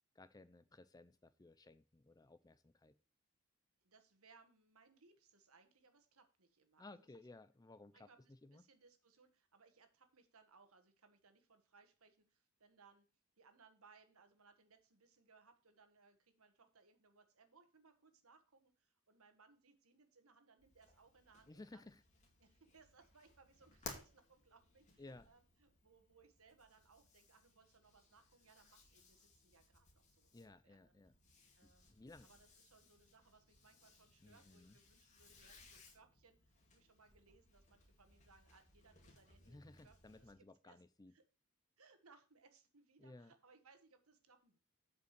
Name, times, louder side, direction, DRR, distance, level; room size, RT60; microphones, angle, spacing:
voice 1, 0.1-2.9 6.8-8.6 21.5-22.0 25.0-25.3 30.3-31.1 31.6-32.3 34.2-34.8 39.5-41.1 43.0-43.3, left 2 dB, 15° left, 13 dB, 0.4 m, -58 dB
voice 2, 3.8-7.1 7.9-13.1 13.4-21.9 22.4-30.9 31.6-31.9 32.2-40.8 41.1-41.2 41.8-44.6, right 4 dB, 70° right, 8 dB, 1.5 m, -68 dB
sound 1, 20.6-40.3, left 3 dB, 35° left, 2.1 m, -61 dB
8.2 x 5.3 x 6.5 m, 0.34 s
head